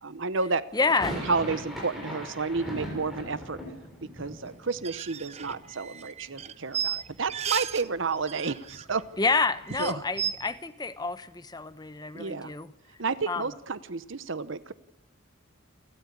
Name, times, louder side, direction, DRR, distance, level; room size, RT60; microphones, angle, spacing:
voice 1, 0.0-0.7 1.1-3.6 4.2-9.0 9.8-10.0 12.1-12.5 13.0-14.7, right 4 dB, 65° right, 15 dB, 0.8 m, -31 dB
voice 2, 0.7-1.2 9.2-12.7 13.3-13.5, left 3 dB, 20° left, 13 dB, 0.8 m, -28 dB
sound 1, 0.7-6.7 6.9-7.8 8.1-8.2 8.4-10.6, equal, ahead, 6.7 m, -41 dB
sound 2, 4.7-7.9 8.1-9.0 9.3-9.4 9.7-10.3, right 8 dB, 30° right, 0.7 m, -34 dB
28.5 x 13.5 x 8.4 m, 0.95 s
head